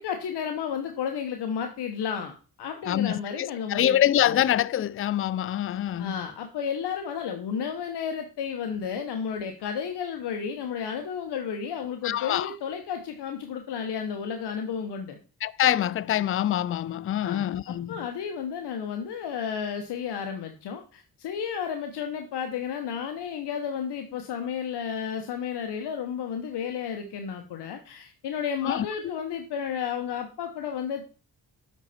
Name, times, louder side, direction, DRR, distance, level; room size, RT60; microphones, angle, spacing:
voice 1, 0.0-2.3 2.6-4.0 4.2-4.4 6.0-15.2 17.2-31.1, left 7 dB, 80° left, 1.1 m, -32 dB
voice 2, 3.4-6.1 12.0-12.5 15.4-17.9 28.7-28.9, left 11 dB, 35° left, 0.4 m, -25 dB
8.0 x 5.5 x 4.2 m
cardioid pair, 75°, 40 cm